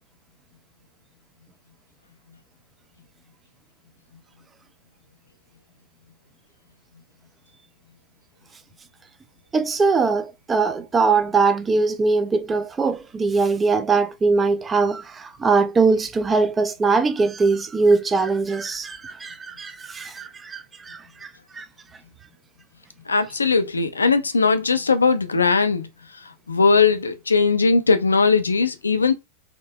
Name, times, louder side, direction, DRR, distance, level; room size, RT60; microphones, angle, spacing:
voice 1, 9.5-21.7, right 4 dB, 15° right, 0.4 m, -21 dB
voice 2, 23.1-25.9 26.5-29.1, left 4 dB, 75° left, 0.5 m, -19 dB
3.6 x 2.6 x 2.3 m
figure-of-eight pair, 90°, 0 cm